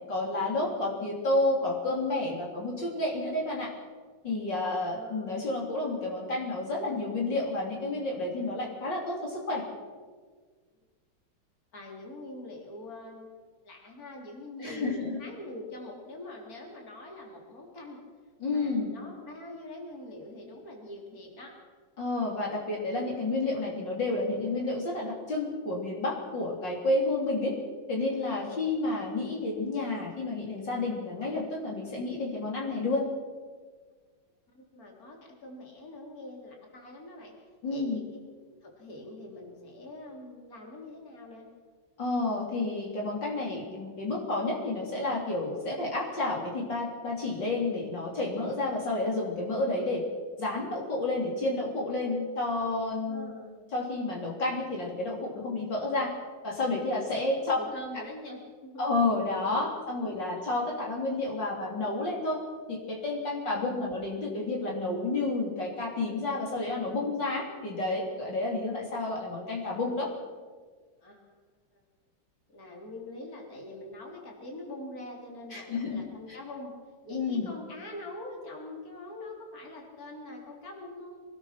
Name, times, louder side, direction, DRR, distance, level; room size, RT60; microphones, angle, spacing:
voice 1, 0.1-3.7 4.2-9.6 14.6-15.2 18.4-18.9 22.0-27.5 27.9-33.0 37.6-38.0 42.0-50.0 50.4-53.3 53.7-56.1 56.4-57.6 58.8-62.4 62.7-70.1 75.5-76.0 77.1-77.5, left 2 dB, 60° left, -2 dB, 4.1 m, -30 dB
voice 2, 4.9-5.5 11.7-13.3 13.6-18.0 18.4-21.5 34.5-37.3 37.7-38.0 38.6-41.5 52.8-53.6 56.6-56.8 57.1-57.2 57.6-59.0 59.6-59.7 60.0-60.2 71.0-71.4 71.7-71.8 72.5-76.7 77.0-81.2, left 1 dB, 45° left, 0 dB, 4.1 m, -44 dB
24.5 x 20.0 x 5.9 m, 1.5 s
omnidirectional pair, 2.2 m